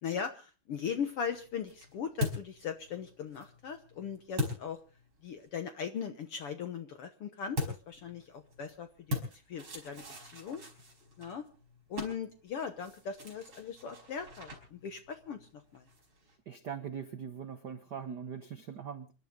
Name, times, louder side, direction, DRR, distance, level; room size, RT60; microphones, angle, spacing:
voice 1, 0.0-4.8 5.2-9.2 9.5-10.0 10.3-10.6 11.2-11.5 11.9-15.8, left 7 dB, 60° left, 8 dB, 1.7 m, -39 dB
sound 1, 1.1-5.5 7.5-16.4, left 2 dB, 40° right, 5.6 m, -41 dB
voice 2, 16.5-19.1, right 7 dB, 85° right, 9 dB, 0.9 m, -41 dB
28.0 x 12.0 x 3.7 m, 0.36 s
omnidirectional pair, 3.5 m